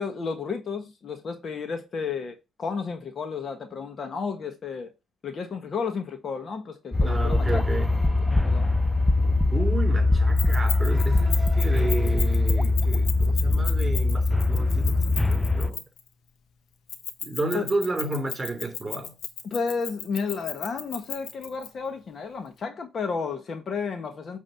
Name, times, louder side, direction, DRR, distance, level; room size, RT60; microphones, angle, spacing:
voice 1, 0.0-4.9 5.2-7.6 8.0-8.7 17.5-17.7 19.4-24.4, left 5 dB, 50° left, 1.4 m, -32 dB
sound 1, 6.9-15.7, left 2 dB, 10° left, 0.6 m, -22 dB
voice 2, 7.0-7.9 9.5-15.8 17.2-19.1, right 2 dB, 25° right, 3.1 m, -31 dB
Keys jangling, 10.4-16.1 16.9-21.7, left 8 dB, 80° left, 1.3 m, -35 dB
9.0 x 3.6 x 5.8 m
cardioid pair, 90°, 0 cm